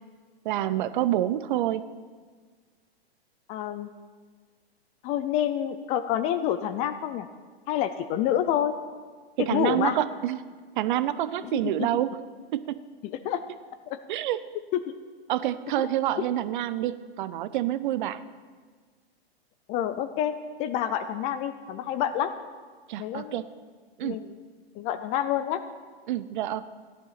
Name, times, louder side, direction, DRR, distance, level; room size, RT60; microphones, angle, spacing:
voice 1, 0.4-1.9 9.4-10.4 10.8-12.1 12.5-12.8 14.1-14.4 15.3-18.2 22.9-23.5 24.0-24.2 26.1-26.7, right 13 dB, 50° right, 15 dB, 0.7 m, -27 dB
voice 2, 3.5-3.9 5.0-7.3 7.7-8.8 9.4-10.0 11.4-11.6 13.0-13.4 13.9-14.0 14.7-14.9 19.7-20.3 20.6-22.3 23.0-23.4 24.0-24.4 24.8-25.6, left 10 dB, 20° left, 11 dB, 0.4 m, -28 dB
14.0 x 10.5 x 5.8 m, 1.5 s
hypercardioid pair, 135°, 31 cm